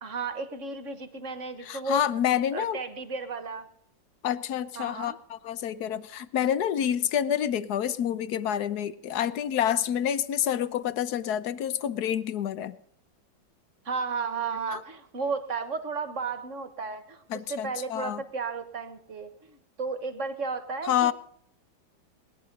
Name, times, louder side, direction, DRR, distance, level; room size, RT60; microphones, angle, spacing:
voice 1, 0.0-2.0 2.5-3.7 4.8-5.2 13.9-21.1, right 4 dB, 45° right, 10 dB, 1.6 m, -34 dB
voice 2, 1.6-2.8 4.2-12.8 14.7-14.8 17.3-18.2 20.8-21.1, left 10 dB, 65° left, 15 dB, 1.3 m, -28 dB
20.0 x 11.5 x 5.3 m, 0.66 s
omnidirectional pair, 2.0 m